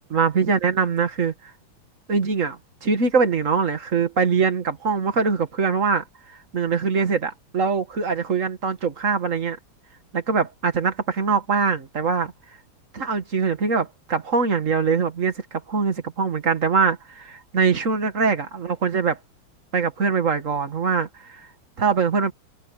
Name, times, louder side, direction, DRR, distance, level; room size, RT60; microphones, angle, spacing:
voice 1, 0.1-1.3 2.1-6.0 6.5-9.6 10.1-12.3 12.9-19.2 19.7-21.5 21.8-22.3, right 5 dB, 35° right, 2.0 m, -23 dB
omnidirectional pair, 2.4 m